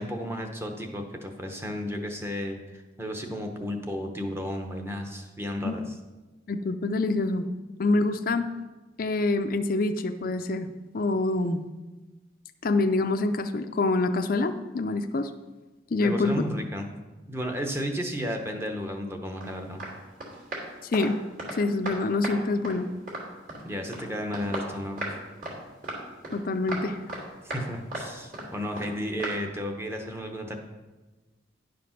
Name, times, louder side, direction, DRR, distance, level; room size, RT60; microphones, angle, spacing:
voice 1, 0.0-5.8 16.0-17.0 17.3-19.8 23.6-25.1 27.4-30.6, equal, 15° right, 3 dB, 0.9 m, -33 dB
voice 2, 6.5-7.5 7.8-8.4 9.0-10.7 10.9-11.6 12.6-15.3 15.9-16.4 20.8-21.2 21.5-22.9 26.3-27.0, left 2 dB, 50° left, 7 dB, 0.5 m, -26 dB
sound 1, 19.4-19.5 19.8-19.9 20.2-21.6 21.9-22.4 22.6-23.6 23.9-24.1 24.3-25.2 25.4-25.6 25.8-26.4 26.7-27.2 27.5-27.6 27.9-28.5 28.8-28.9 29.2-29.4, right 1 dB, 45° right, 2.9 m, -35 dB
10.5 x 5.1 x 5.8 m, 1.2 s
head